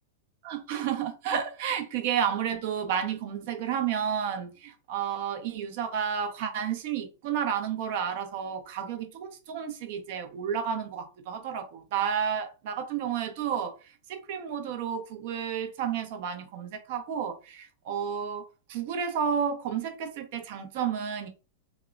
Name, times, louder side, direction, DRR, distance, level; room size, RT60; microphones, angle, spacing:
voice 1, 0.4-13.8 14.1-21.3, right 8 dB, 60° right, 0.6 m, -31 dB
2.8 x 2.1 x 2.4 m
hypercardioid pair, 115°, 0 cm